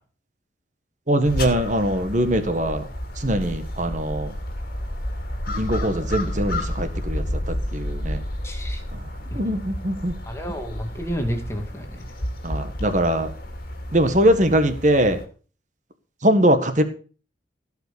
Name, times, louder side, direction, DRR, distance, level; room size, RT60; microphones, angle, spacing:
voice 1, 1.1-2.9 3.1-4.4 5.5-8.2 8.9-10.1 12.4-13.3 13.9-15.2 16.2-16.8, right 1 dB, 40° right, 9 dB, 1.7 m, -22 dB
sound 1, 1.2-15.3, left 1 dB, 50° left, 2.7 m, -31 dB
voice 2, 8.4-8.8 9.3-9.4 10.3-12.0, equal, 15° left, 3 dB, 2.2 m, -30 dB
17.0 x 5.8 x 7.0 m, 0.39 s
head